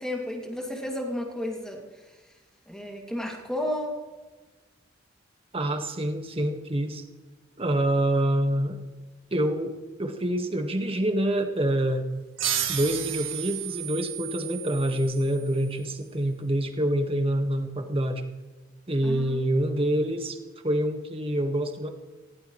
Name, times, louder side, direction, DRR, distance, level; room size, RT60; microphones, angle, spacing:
voice 1, 0.0-1.8 2.7-4.0 19.0-19.5, left 1 dB, 5° left, 0 dB, 2.5 m, -32 dB
voice 2, 5.5-7.0 7.6-8.8 9.3-9.7 10.0-12.1 12.7-18.2 18.9-20.4 20.6-21.9, right 1 dB, 30° right, 5 dB, 1.7 m, -26 dB
sound 1, 12.4-15.6, right 10 dB, 75° right, 2.0 m, -32 dB
19.5 x 16.5 x 3.2 m, 1.2 s
head